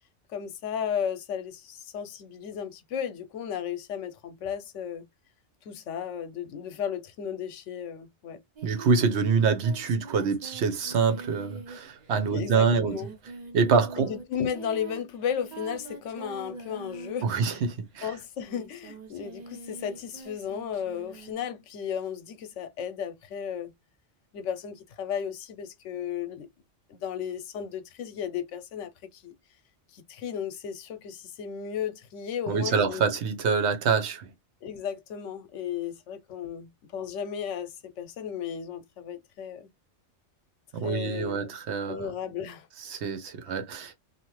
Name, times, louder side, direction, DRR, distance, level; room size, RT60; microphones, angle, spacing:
voice 1, 0.3-5.1 5.7-8.4 12.3-13.1 14.0-17.6 18.0-23.7 24.3-26.5 26.9-29.4 29.9-33.1 34.6-39.7 40.8-41.5 41.9-42.7, left 8 dB, 80° left, 1.0 m, -34 dB
Singing, 8.6-17.9 18.4-21.3, right 5 dB, 40° right, 0.8 m, -45 dB
voice 2, 8.6-13.0 13.5-14.1 17.2-18.1 32.5-34.3 40.7-42.1 42.8-43.9, right 5 dB, 65° right, 1.0 m, -26 dB
2.8 x 2.4 x 3.0 m
omnidirectional pair, 1.2 m